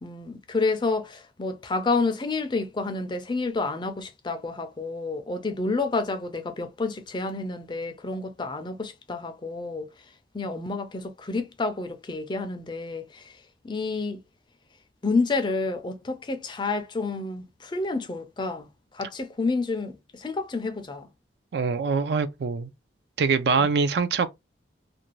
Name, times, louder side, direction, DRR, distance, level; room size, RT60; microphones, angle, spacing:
voice 1, 0.0-9.9 10.3-13.3 13.6-14.2 15.0-21.1 23.6-23.7, left 3 dB, 25° left, 0.4 m, -29 dB
voice 2, 21.5-22.7 23.2-24.3, right 5 dB, 60° right, 0.4 m, -24 dB
2.5 x 2.2 x 3.0 m
head